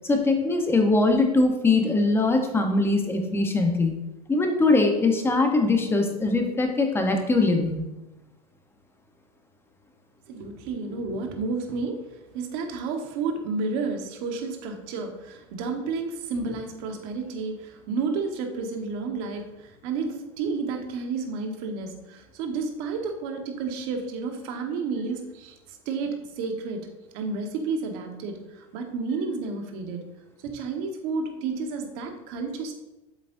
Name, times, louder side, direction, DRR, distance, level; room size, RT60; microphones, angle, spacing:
voice 1, 0.0-3.9 4.3-7.8, left 3 dB, 15° left, 4 dB, 1.0 m, -22 dB
voice 2, 10.3-26.9 27.1-30.0 30.4-32.7, right 4 dB, 60° right, 4 dB, 1.4 m, -31 dB
8.0 x 7.9 x 2.7 m, 0.99 s
supercardioid pair, 130°, 18 cm